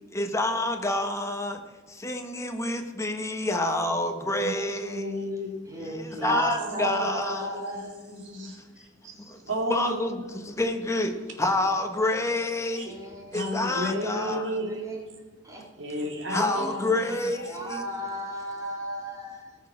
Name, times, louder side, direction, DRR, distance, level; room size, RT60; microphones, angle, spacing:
voice 1, 0.1-1.6 1.9-5.1 5.8-7.5 9.2-9.4 9.7-11.1 11.4-13.0 13.3-14.5 16.3-17.9, left 2 dB, 15° left, 5 dB, 1.3 m, -28 dB
voice 2, 4.4-5.7 6.1-9.2 9.5-10.0 12.8-12.9 13.3-15.0 15.8-17.3, equal, 75° right, 2 dB, 2.5 m, -33 dB
voice 3, 5.7-7.9 12.8-13.6 14.1-15.0 15.4-15.6 16.5-19.6, equal, 20° right, -2 dB, 2.7 m, -35 dB
17.5 x 6.5 x 6.1 m, 1.3 s
head